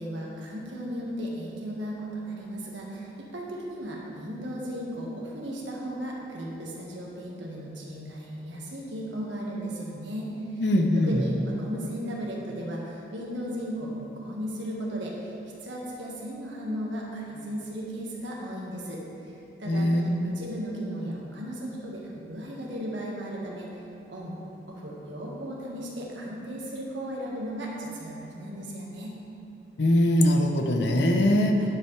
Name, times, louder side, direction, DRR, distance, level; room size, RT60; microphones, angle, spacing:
voice 1, 0.0-10.6 10.9-15.3 15.6-23.7 24.1-24.3 24.7-29.2, equal, 80° right, -3 dB, 1.6 m, -36 dB
voice 2, 10.6-11.2 19.7-20.4 29.8-31.6, left 1 dB, 70° left, 4 dB, 0.7 m, -22 dB
9.7 x 7.5 x 3.3 m, 2.9 s
head